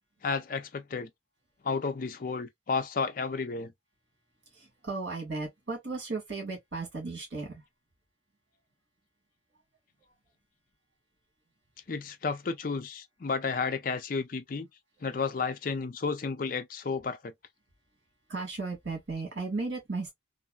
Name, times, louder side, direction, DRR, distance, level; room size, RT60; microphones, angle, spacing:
voice 1, 0.2-1.1 1.6-3.7 11.9-14.7 15.0-17.3, left 4 dB, 45° left, 0.4 m, -32 dB
voice 2, 4.5-7.6 18.3-20.1, right 3 dB, 75° right, 1.6 m, -35 dB
3.0 x 2.6 x 2.2 m
head